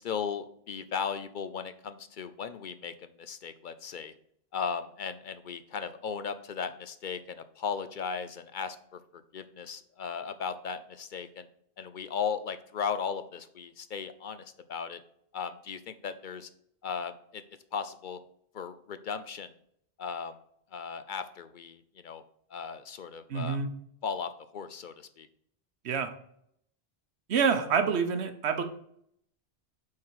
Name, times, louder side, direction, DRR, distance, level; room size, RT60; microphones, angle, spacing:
voice 1, 0.0-4.1 4.5-11.5 11.8-15.0 15.3-16.5 16.8-17.4 17.7-18.2 18.5-19.5 20.0-20.3 20.7-21.8 22.0-22.2 22.5-23.6 24.0-25.3, left 6 dB, 60° left, 11 dB, 0.6 m, -36 dB
voice 2, 23.3-23.7 25.8-26.1 27.3-28.6, right 6 dB, 85° right, 8 dB, 1.1 m, -27 dB
8.5 x 3.9 x 4.7 m, 0.69 s
omnidirectional pair, 1.1 m